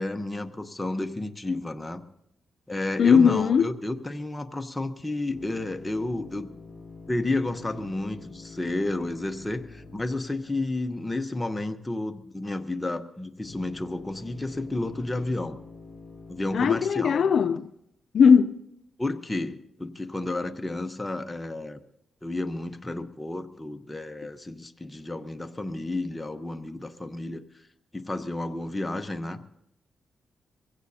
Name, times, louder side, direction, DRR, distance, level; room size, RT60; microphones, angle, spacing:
voice 1, 0.0-2.0 2.7-6.5 7.1-15.6 16.3-17.3 19.0-21.8 22.2-27.4 27.9-29.4, left 2 dB, 15° left, 0.9 m, -31 dB
voice 2, 3.0-3.7 16.5-17.7 18.1-18.6, left 6 dB, 65° left, 0.5 m, -19 dB
sound 1, 5.3-11.6 13.4-16.8, left 4 dB, 30° left, 3.8 m, -46 dB
23.0 x 16.5 x 2.8 m
cardioid pair, 100°, 0 cm